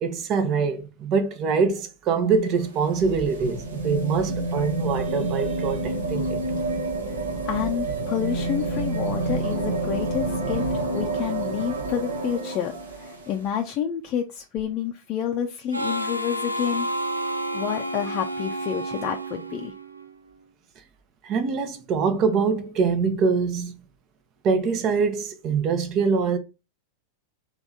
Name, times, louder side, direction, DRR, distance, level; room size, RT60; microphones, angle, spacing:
voice 1, 0.0-6.4 21.2-23.7 24.4-26.4, right 5 dB, 35° right, 0.8 m, -24 dB
sound 1, 2.4-13.4 14.6-14.7, right 2 dB, 70° right, 1.0 m, -28 dB
voice 2, 7.5-16.9 17.5-19.7, left 9 dB, 35° left, 0.5 m, -29 dB
Harmonica, 15.7-20.2, right 1 dB, 85° right, 0.4 m, -30 dB
3.4 x 3.1 x 3.8 m
figure-of-eight pair, 90°, 0 cm